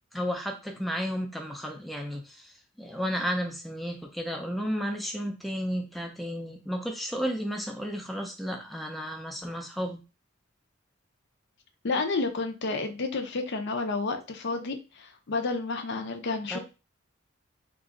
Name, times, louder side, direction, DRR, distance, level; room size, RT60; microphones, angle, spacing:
voice 1, 0.1-10.0 16.5-16.6, equal, ahead, 2 dB, 0.4 m, -33 dB
voice 2, 11.8-16.6, left 3 dB, 60° left, 5 dB, 0.6 m, -30 dB
3.0 x 2.4 x 3.7 m, 0.30 s
head